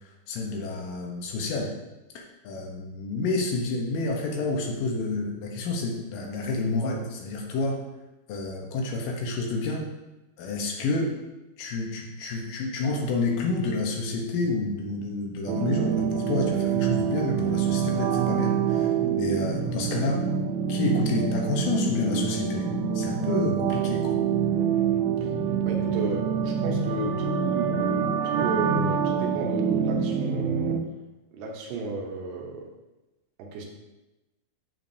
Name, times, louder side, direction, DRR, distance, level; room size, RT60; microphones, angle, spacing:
voice 1, 0.3-1.7 2.4-7.8 8.3-9.9 10.4-11.1 11.6-20.3 20.7-22.7 22.9-24.1, left 3 dB, 80° left, 0 dB, 2.0 m, -29 dB
sound 1, 15.5-30.8, right 7 dB, 90° right, 3.0 m, -26 dB
voice 2, 25.6-30.8 31.3-32.7 33.4-33.7, right 2 dB, 75° right, 0 dB, 2.9 m, -33 dB
8.7 x 7.3 x 2.7 m, 1.0 s
omnidirectional pair, 5.2 m